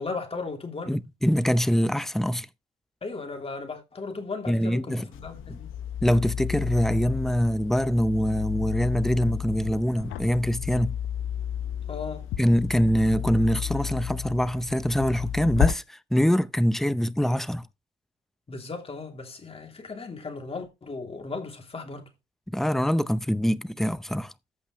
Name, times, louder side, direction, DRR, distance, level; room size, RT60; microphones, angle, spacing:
voice 1, 0.0-1.0 3.0-5.7 11.9-12.3 18.5-22.1, left 4 dB, 30° left, 3.0 m, -36 dB
voice 2, 0.9-2.5 4.5-5.1 5.5-5.6 6.0-10.9 12.4-17.6 22.5-24.3, equal, ahead, 0.6 m, -24 dB
sound 1, 5.1-15.7, left 10 dB, 85° left, 0.9 m, -32 dB
14.0 x 5.5 x 3.1 m
cardioid pair, 90°, 20 cm